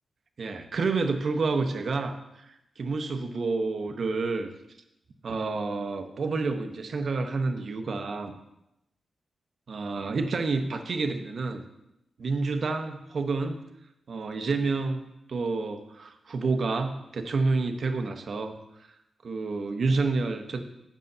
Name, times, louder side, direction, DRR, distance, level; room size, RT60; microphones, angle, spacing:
voice 1, 0.4-4.5 5.2-8.3 9.7-11.6 12.2-13.6 14.1-15.0 15.3-18.6 19.2-20.6, right 3 dB, 65° right, 7 dB, 0.9 m, -29 dB
6.6 x 5.5 x 6.6 m, 0.85 s
supercardioid pair, 45°, 0 cm